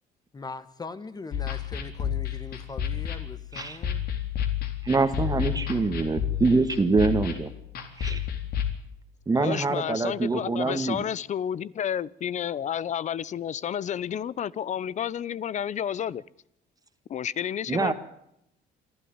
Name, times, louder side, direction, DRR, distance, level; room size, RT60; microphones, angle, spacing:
voice 1, 0.3-4.0, left 3 dB, 25° left, 1.5 m, -41 dB
sound 1, 1.3-8.7, left 9 dB, 65° left, 3.9 m, -31 dB
voice 2, 4.8-7.5 8.0-8.2 9.3-11.0 17.7-17.9, right 3 dB, 20° right, 1.7 m, -25 dB
voice 3, 9.3-16.2 17.1-17.9, left 9 dB, 45° left, 0.7 m, -31 dB
26.5 x 12.5 x 8.9 m
cardioid pair, 110°, 17 cm